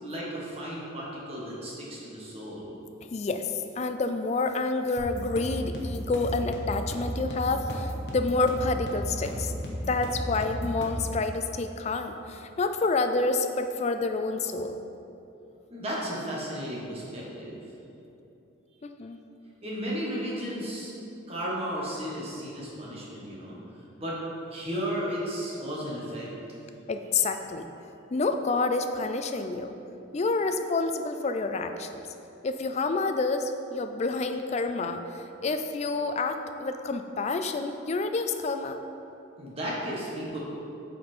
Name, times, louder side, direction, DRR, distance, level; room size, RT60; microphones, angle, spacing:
voice 1, 0.0-2.7 15.7-17.6 19.6-20.9 21.3-23.6 24.0-24.2 24.5-26.3 39.4-40.4, equal, 30° right, -5 dB, 1.4 m, -34 dB
voice 2, 3.1-9.5 9.9-14.8 18.8-19.2 26.9-27.7 28.1-29.7 30.1-32.0 32.4-38.8, left 3 dB, 35° left, 7 dB, 0.3 m, -28 dB
sound 1, 5.0-11.1, equal, 55° left, 1.0 m, -34 dB
8.0 x 4.2 x 4.4 m, 2.9 s
head